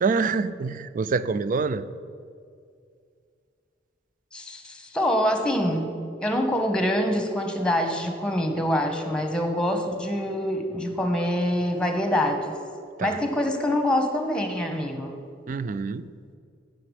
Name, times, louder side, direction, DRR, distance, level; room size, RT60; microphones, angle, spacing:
voice 1, 0.0-1.9 13.0-13.2 15.5-16.1, right 4 dB, 45° right, 15 dB, 0.4 m, -26 dB
voice 2, 4.3-5.9 6.2-12.6 13.0-15.1, left 1 dB, 5° left, 5 dB, 1.0 m, -25 dB
7.7 x 7.5 x 8.1 m, 2.2 s
head